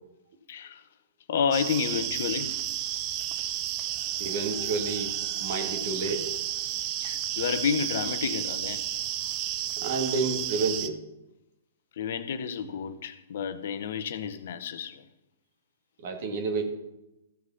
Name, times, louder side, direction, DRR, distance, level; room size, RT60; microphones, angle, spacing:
voice 1, 0.5-0.8 1.3-2.5 7.0-8.9 12.0-15.0, left 7 dB, 65° left, 0.9 m, -30 dB
sound 1, 1.5-10.9, right 12 dB, 35° right, 0.7 m, -32 dB
voice 2, 4.2-6.3 9.8-11.0 16.0-16.6, right 3 dB, 60° right, 2.2 m, -30 dB
14.5 x 5.0 x 5.7 m
hypercardioid pair, 130°, 0 cm